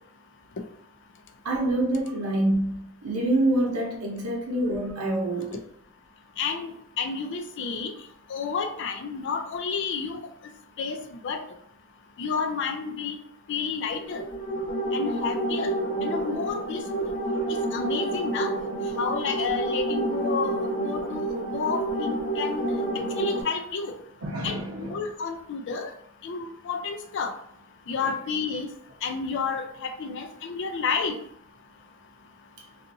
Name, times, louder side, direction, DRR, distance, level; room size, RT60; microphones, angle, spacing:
voice 1, 1.4-5.6 24.2-25.0 28.0-28.1, right 1 dB, 80° right, -1 dB, 0.8 m, -26 dB
voice 2, 6.4-7.9 8.3-10.2 10.8-11.4 12.2-13.2 13.5-14.2 14.9-15.7 16.0-17.1 17.5-18.5 19.0-22.7 23.1-23.9 24.4-25.9 26.2-27.3 27.9-28.7 29.0-31.2, left 5 dB, 55° left, 5 dB, 0.4 m, -30 dB
sound 1, 14.0-23.4, right 2 dB, 25° left, 1.0 m, -29 dB
2.6 x 2.5 x 2.5 m, 0.68 s
head